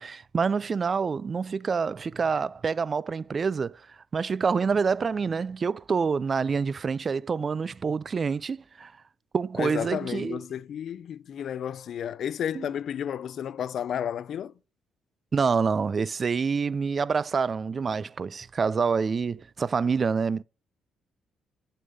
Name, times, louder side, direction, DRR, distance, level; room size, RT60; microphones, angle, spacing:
voice 1, 0.0-3.8 4.1-8.9 9.3-10.4 12.5-12.7 15.3-20.4, right 5 dB, 40° right, 0.4 m, -27 dB
voice 2, 9.6-14.5, left 9 dB, 65° left, 0.4 m, -32 dB
9.4 x 6.6 x 5.2 m
cardioid pair, 90°, 0 cm